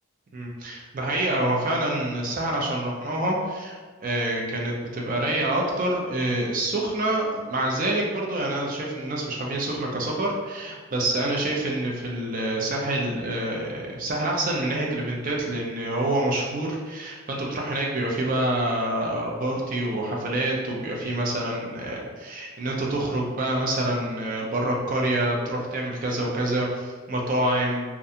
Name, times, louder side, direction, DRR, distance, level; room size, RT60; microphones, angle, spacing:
voice 1, 0.3-27.8, right 1 dB, 40° right, -2 dB, 0.4 m, -27 dB
2.4 x 2.2 x 2.7 m, 1.4 s
head